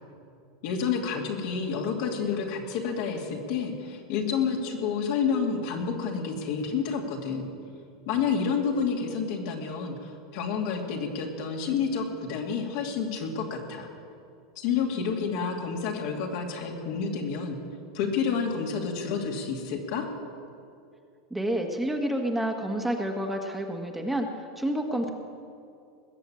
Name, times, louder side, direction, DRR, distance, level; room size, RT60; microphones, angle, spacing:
voice 1, 0.6-7.5 8.1-13.9 14.6-17.6 17.9-20.1, left 6 dB, 60° left, 1 dB, 2.6 m, -29 dB
voice 2, 21.3-24.3 24.6-25.1, right 1 dB, 5° right, 2 dB, 1.6 m, -29 dB
20.5 x 7.1 x 8.6 m, 2.5 s
hypercardioid pair, 95°, 2 cm